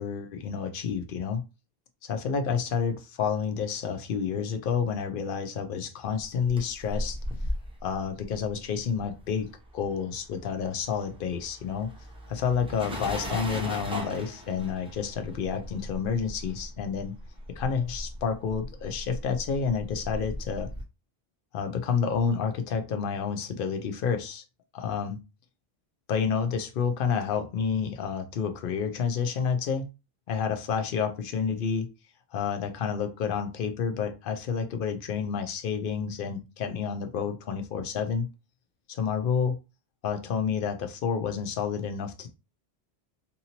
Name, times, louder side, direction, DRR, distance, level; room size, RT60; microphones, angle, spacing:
voice 1, 0.0-1.4 2.0-7.2 7.8-9.5 9.7-11.9 12.3-17.1 17.6-20.7 21.5-24.4 24.7-25.2 26.1-29.9 30.3-31.9 32.3-38.3 38.9-39.6 40.0-42.3, left 6 dB, 60° left, 0.7 m, -29 dB
sound 1, 6.2-9.8 10.1-20.8, equal, 5° right, 0.5 m, -38 dB
2.7 x 2.6 x 2.8 m
omnidirectional pair, 1.1 m